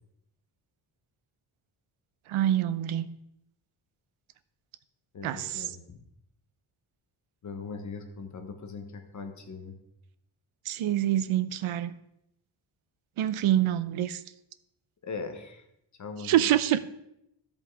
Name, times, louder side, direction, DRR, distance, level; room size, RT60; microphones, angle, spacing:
voice 1, 2.3-3.1 5.2-5.7 10.7-11.9 13.2-14.2 16.2-16.8, right 12 dB, 85° right, 14 dB, 0.7 m, -26 dB
voice 2, 5.1-6.0 7.4-9.7 15.0-15.6 16.0-16.4, left 4 dB, 35° left, 6 dB, 1.1 m, -40 dB
13.0 x 5.3 x 4.7 m, 0.81 s
wide cardioid pair, 175°, 48 cm